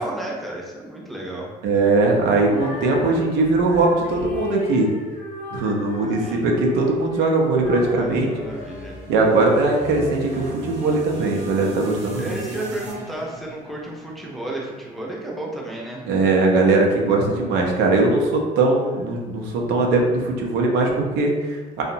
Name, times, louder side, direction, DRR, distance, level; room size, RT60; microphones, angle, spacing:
voice 1, 0.0-1.5 6.2-6.5 7.8-9.0 12.2-16.0, right 1 dB, ahead, -4 dB, 0.5 m, -32 dB
voice 2, 1.6-4.9 5.5-8.3 9.1-12.3 16.1-21.8, right 3 dB, 85° right, 0 dB, 0.5 m, -20 dB
Female singing, 2.4-9.4, left 1 dB, 65° left, 0.6 m, -35 dB
sound 1, 6.6-15.0, right 2 dB, 40° right, 0.7 m, -39 dB
2.7 x 2.1 x 2.6 m, 1.3 s
cardioid pair, 110°, 17 cm